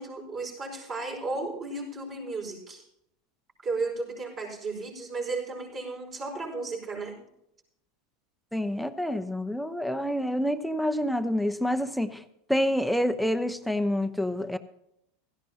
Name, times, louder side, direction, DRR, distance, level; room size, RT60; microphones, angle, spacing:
voice 1, 0.0-2.8 3.6-7.2, right 3 dB, 35° right, -2 dB, 5.2 m, -34 dB
voice 2, 8.5-12.2 12.5-14.6, equal, ahead, 9 dB, 0.8 m, -27 dB
16.5 x 14.0 x 2.8 m, 0.77 s
hypercardioid pair, 85°, 0 cm